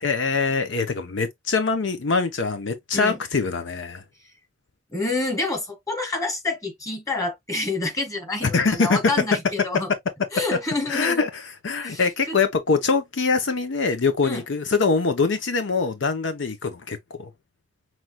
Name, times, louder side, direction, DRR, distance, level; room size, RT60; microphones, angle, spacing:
voice 1, 0.0-4.0 8.4-9.0 10.9-11.3 11.6-17.3, left 4 dB, 75° left, 0.7 m, -23 dB
voice 2, 4.9-9.9 10.3-11.2 11.8-12.0 12.3-12.4 14.2-14.4, left 2 dB, 20° left, 1.7 m, -28 dB
5.9 x 3.1 x 2.2 m
head